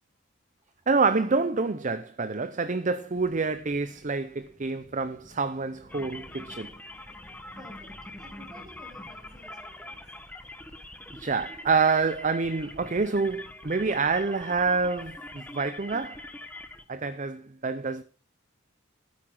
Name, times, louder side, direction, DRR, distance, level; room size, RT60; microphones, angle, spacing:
voice 1, 0.9-6.7 11.1-16.2 16.9-18.0, right 4 dB, 35° right, 0.6 m, -27 dB
Thunder, 3.1-12.8, left 1 dB, 35° left, 2.9 m, -57 dB
sound 1, 5.9-16.8, left 2 dB, 10° left, 1.1 m, -44 dB
voice 2, 7.6-10.0, equal, 20° right, 4.1 m, -52 dB
12.5 x 9.8 x 6.0 m
head